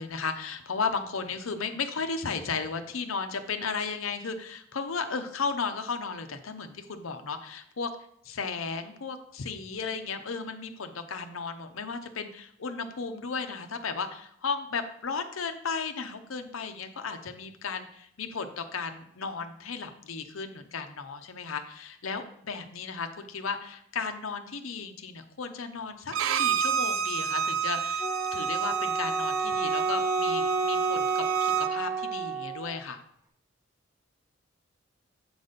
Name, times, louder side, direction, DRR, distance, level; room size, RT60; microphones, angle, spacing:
voice 1, 0.0-7.9 8.2-28.1 28.3-33.0, left 5 dB, 80° left, 7 dB, 0.8 m, -35 dB
Bowed string instrument, 26.1-31.7, right 7 dB, 75° right, 0.4 m, -29 dB
Wind instrument woodwind instrument, 28.0-32.8, right 4 dB, 15° right, 0.7 m, -30 dB
7.7 x 4.1 x 5.1 m, 0.68 s
head